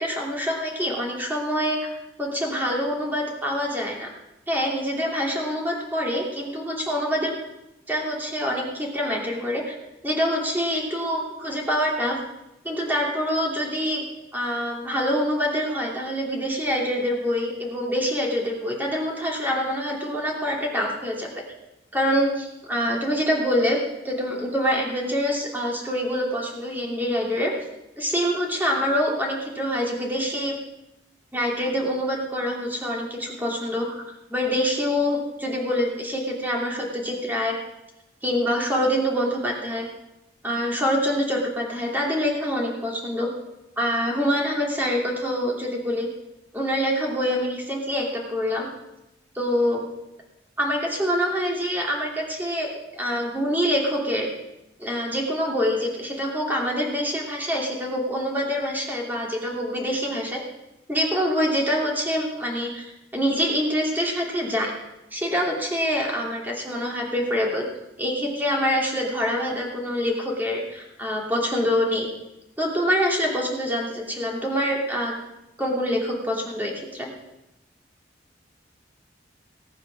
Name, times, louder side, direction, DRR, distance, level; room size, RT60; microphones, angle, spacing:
voice 1, 0.0-4.1 4.5-7.3 7.9-9.7 10.0-12.2 12.6-14.0 14.3-21.3 21.9-23.8 24.0-27.5 28.0-30.5 31.3-34.0 34.3-37.5 38.2-39.9 40.4-43.3 43.8-46.1 46.5-48.7 49.3-49.8 50.6-52.7 53.0-54.3 54.8-60.4 60.9-62.8 63.1-64.7 65.1-67.7 68.0-72.1 72.6-75.2 75.6-77.1, equal, 10° right, -2 dB, 2.7 m, -25 dB
18.5 x 7.4 x 6.2 m, 0.93 s
head